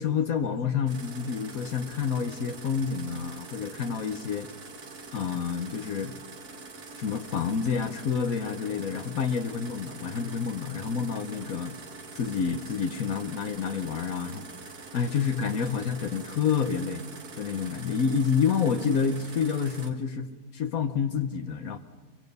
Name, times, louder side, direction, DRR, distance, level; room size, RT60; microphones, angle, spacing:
voice 1, 0.0-4.5 5.1-6.2 7.0-11.7 12.1-14.5 14.9-17.0 17.4-20.3 20.5-21.8, left 6 dB, 65° left, 9 dB, 1.3 m, -28 dB
sound 1, 0.9-19.9, right 3 dB, 70° right, 2.2 m, -44 dB
24.0 x 24.0 x 5.4 m, 1.5 s
omnidirectional pair, 1.7 m